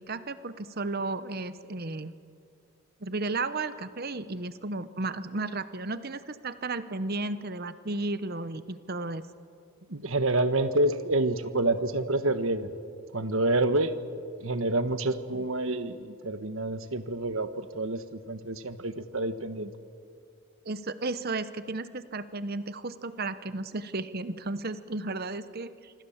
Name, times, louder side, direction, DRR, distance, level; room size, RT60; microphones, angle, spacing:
voice 1, 0.0-2.1 3.0-9.2 20.6-25.9, right 3 dB, 45° right, 13 dB, 0.9 m, -34 dB
voice 2, 9.9-12.7 13.1-13.9 14.4-19.7, right 2 dB, 65° right, 10 dB, 1.3 m, -28 dB
26.0 x 25.0 x 7.3 m, 2.4 s
head